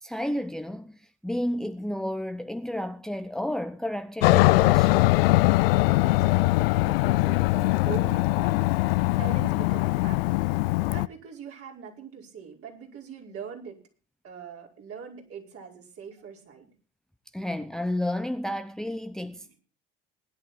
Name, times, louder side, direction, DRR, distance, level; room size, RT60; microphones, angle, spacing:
voice 1, 0.0-5.2 17.3-19.6, left 1 dB, ahead, 0.8 m, -31 dB
Aircraft, 4.2-11.1, left 21 dB, 70° left, 0.6 m, -22 dB
voice 2, 5.9-8.8 9.1-10.4 10.8-13.8 14.2-16.7 19.4-19.5, right 7 dB, 50° right, 5.3 m, -42 dB
20.0 x 11.0 x 4.3 m
figure-of-eight pair, 60°, 30 cm